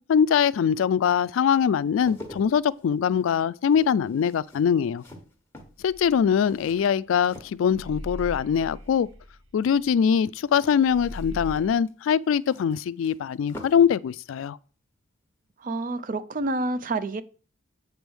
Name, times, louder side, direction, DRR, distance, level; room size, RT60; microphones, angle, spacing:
voice 1, 0.0-5.0 5.8-9.1 9.5-14.6, left 7 dB, 70° left, 0.3 m, -22 dB
sound 1, 1.8-8.2 8.5-9.1 10.5-14.0 14.2-14.4, left 1 dB, 10° left, 1.4 m, -47 dB
sound 2, 5.8-7.3 7.6-10.6 10.8-11.7, equal, 65° right, 1.2 m, -40 dB
voice 2, 15.6-17.2, right 2 dB, 40° right, 0.5 m, -28 dB
8.0 x 3.4 x 6.2 m
head